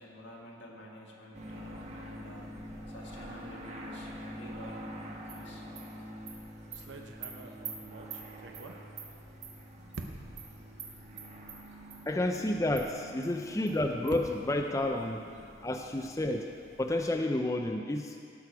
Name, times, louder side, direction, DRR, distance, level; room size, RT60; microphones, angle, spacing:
voice 1, 0.0-2.5 2.9-5.7, left 1 dB, 80° left, -2 dB, 1.8 m, -50 dB
sound 1, 1.3-17.1, equal, 35° right, 1.2 m, -46 dB
Animal, 5.3-5.4 5.8-5.9 6.3-6.4 6.7-6.8 7.2-7.3 7.6-7.7 8.1-8.2 8.5-8.7 9.0-9.1 9.4-9.5 9.9-10.1 10.4-10.5 10.8-10.9 11.2-11.6 11.9-12.0 12.3-12.4 12.8-12.9 13.2-13.3 13.7-13.8 14.1-14.2, right 8 dB, 65° right, 2.0 m, -43 dB
sound 2, 6.1-6.2 6.7-9.5 9.9-10.5 11.2-11.3 11.7-11.8 13.4-15.7, right 2 dB, 85° right, 0.8 m, -47 dB
voice 2, 12.1-15.2 15.6-16.5 16.8-18.2, left 1 dB, 15° left, 3 dB, 0.4 m, -30 dB
18.0 x 6.3 x 4.7 m, 2.3 s
head